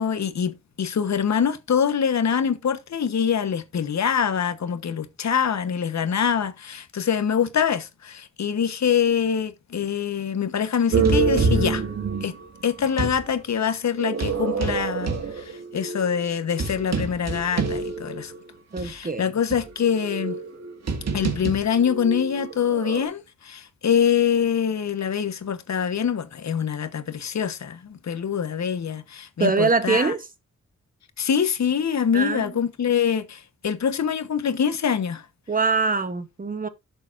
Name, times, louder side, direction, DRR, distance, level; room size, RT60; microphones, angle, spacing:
voice 1, 0.0-11.8 12.2-12.3 12.6-18.3 18.8-20.4 21.1-30.1 31.2-35.2, left 7 dB, 65° left, 1.2 m, -24 dB
sound 1, 10.9-13.2 14.0-18.4 18.8-18.9 19.5-23.0, right 4 dB, 60° right, 1.9 m, -26 dB
voice 2, 18.7-19.3 29.4-30.3 32.1-32.6 35.5-36.7, right 4 dB, 30° right, 1.0 m, -23 dB
12.0 x 6.9 x 2.6 m
wide cardioid pair, 170°, 30 cm